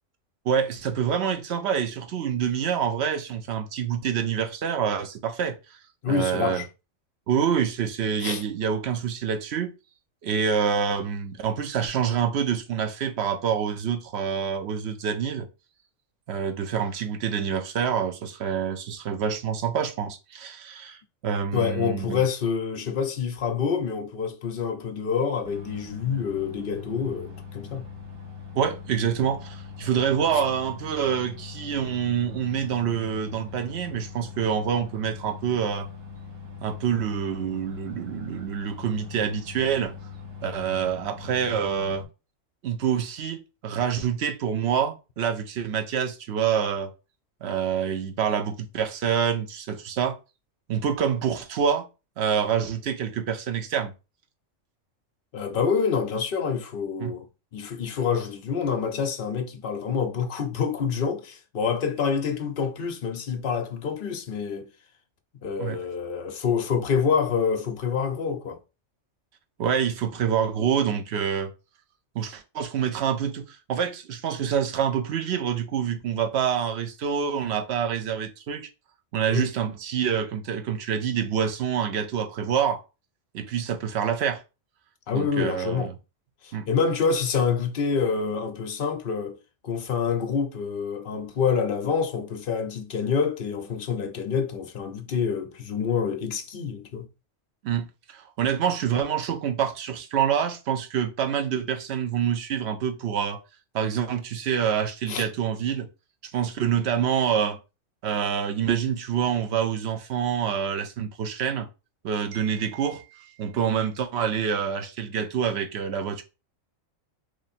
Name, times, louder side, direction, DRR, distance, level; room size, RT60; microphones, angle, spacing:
voice 1, 0.5-5.8 6.1-6.6 7.3-9.7 10.2-15.5 16.3-21.0 21.2-22.2 28.5-35.9 36.6-39.9 40.4-42.0 42.6-46.9 47.4-50.2 50.7-51.9 52.2-53.9 57.0-57.1 65.6-65.8 69.6-71.5 72.1-78.7 79.1-82.8 83.3-84.4 85.1-85.9 86.5-86.7 97.6-103.4 103.7-105.9 106.2-107.6 108.0-111.7 112.0-116.2, right 8 dB, 65° right, 0.8 m, -26 dB
voice 2, 6.0-6.7 8.2-8.4 21.5-27.9 30.3-30.4 55.3-64.7 65.4-68.6 79.3-79.5 85.1-85.9 86.4-89.4 89.6-97.1 105.1-105.3, left 6 dB, 55° left, 0.7 m, -27 dB
sound 1, 25.4-42.0, left 6 dB, 85° right, 1.5 m, -41 dB
3.1 x 2.6 x 4.1 m
omnidirectional pair, 1.3 m